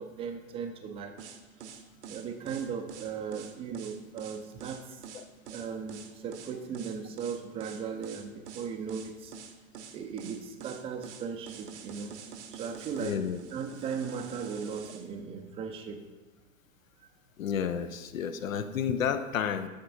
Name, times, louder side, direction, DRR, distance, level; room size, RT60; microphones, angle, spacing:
voice 1, 0.0-1.4 1.6-1.8 2.1-5.0 5.5-9.3 9.9-12.1 12.5-13.2 13.5-16.0, right 6 dB, 15° right, 6 dB, 0.4 m, -37 dB
sound 1, 1.2-15.0, right 7 dB, 55° right, 0.8 m, -46 dB
voice 2, 13.0-13.4 17.4-19.7, left 8 dB, 75° left, 11 dB, 0.6 m, -31 dB
11.0 x 6.5 x 2.6 m, 1.2 s
figure-of-eight pair, 90°, 41 cm